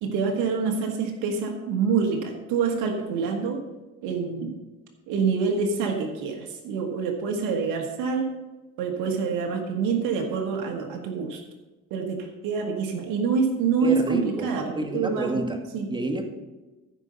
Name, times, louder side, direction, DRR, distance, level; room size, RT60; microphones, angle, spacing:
voice 1, 0.0-3.6 4.0-4.5 5.1-8.2 8.8-11.4 11.9-15.4 15.7-15.9, right 5 dB, 90° right, 3 dB, 1.5 m, -26 dB
voice 2, 13.8-14.5 14.8-15.6 15.9-16.3, right 2 dB, 15° right, 4 dB, 2.1 m, -29 dB
13.5 x 5.3 x 6.7 m, 1.1 s
supercardioid pair, 75°, 30 cm